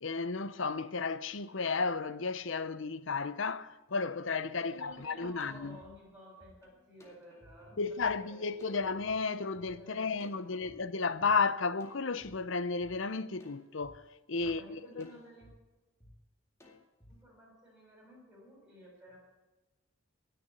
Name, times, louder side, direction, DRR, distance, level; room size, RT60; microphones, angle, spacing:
voice 1, 0.0-5.8 7.8-14.0 14.3-15.1, left 4 dB, 65° left, 0.8 m, -33 dB
voice 2, 4.6-8.8 9.7-10.6 14.4-15.5 17.1-19.2, equal, 5° right, 7.0 m, -54 dB
sound 1, 5.4-9.1 9.6-9.7 10.2-11.3 11.8-12.3 12.8-12.9 13.4-13.9 14.4-14.5 15.0-15.5 16.0-16.1 16.6-17.1, left 1 dB, 15° left, 2.1 m, -59 dB
19.5 x 6.9 x 8.3 m
head